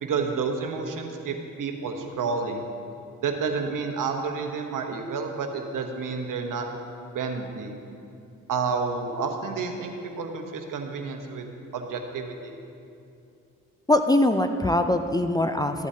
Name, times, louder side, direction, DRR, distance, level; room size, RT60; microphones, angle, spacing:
voice 1, 0.0-2.6 3.2-6.7 7.1-7.8 8.5-11.5 11.7-12.5, right 5 dB, 70° right, 4 dB, 1.0 m, -30 dB
voice 2, 13.9-15.9, left 1 dB, 10° left, 6 dB, 0.4 m, -22 dB
13.0 x 8.1 x 2.8 m, 2.5 s
supercardioid pair, 60°, 33 cm